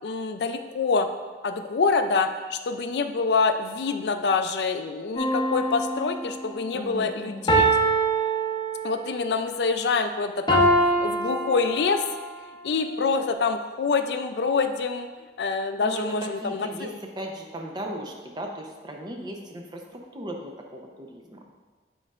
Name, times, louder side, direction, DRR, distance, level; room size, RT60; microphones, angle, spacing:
voice 1, 0.0-1.1 1.4-7.7 8.8-10.7 11.0-12.0 12.6-15.1 15.4-16.9, left 4 dB, 70° left, 8 dB, 0.4 m, -26 dB
sound 1, 5.2-6.5 7.5-9.2 10.5-12.2 12.8-13.0, right 2 dB, 25° left, 0.7 m, -24 dB
voice 2, 6.7-7.5 15.8-21.4, right 1 dB, 25° right, 1 dB, 0.7 m, -37 dB
7.7 x 5.3 x 2.4 m, 1.3 s
head